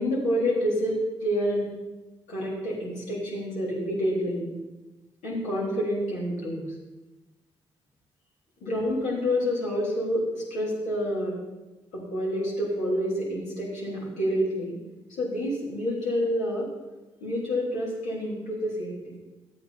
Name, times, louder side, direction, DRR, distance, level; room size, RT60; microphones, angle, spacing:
voice 1, 0.0-1.7 2.3-4.5 5.2-6.7 8.6-11.4 11.9-14.8 15.2-16.7 17.2-19.2, equal, 80° left, -5 dB, 3.8 m, -28 dB
13.0 x 8.7 x 4.2 m, 1.1 s
hypercardioid pair, 45°, 12 cm